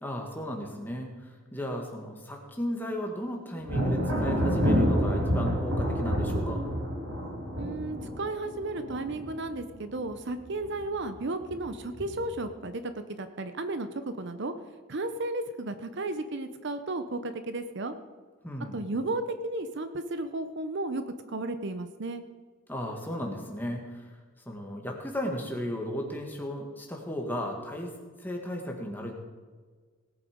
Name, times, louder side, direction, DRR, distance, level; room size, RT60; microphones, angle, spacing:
voice 1, 0.0-6.6 18.4-18.8 22.7-24.2 24.4-29.2, equal, 10° left, 1 dB, 1.7 m, -35 dB
Thunder, 3.6-10.1 10.5-11.0 11.5-12.3, equal, 90° right, 3.0 m, -28 dB
voice 2, 7.6-14.5 14.9-17.9 18.7-21.0 21.3-22.2, right 2 dB, 55° right, 10 dB, 0.7 m, -34 dB
18.0 x 8.2 x 5.1 m, 1.5 s
head